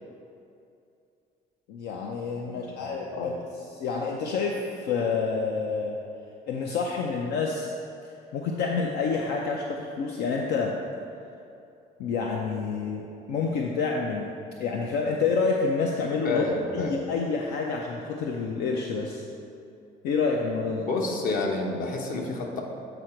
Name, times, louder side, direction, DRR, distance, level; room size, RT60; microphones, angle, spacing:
voice 1, 1.7-3.3 3.7-6.0 6.5-7.7 8.3-10.7 12.0-13.0 13.3-14.3 14.6-16.4 16.7-19.2 20.0-20.8, left 4 dB, 75° left, 0 dB, 0.6 m, -28 dB
voice 2, 16.2-16.9 20.8-22.6, left 3 dB, 55° left, 1 dB, 1.0 m, -29 dB
8.0 x 4.0 x 4.4 m, 2.6 s
cardioid pair, 110°, 17 cm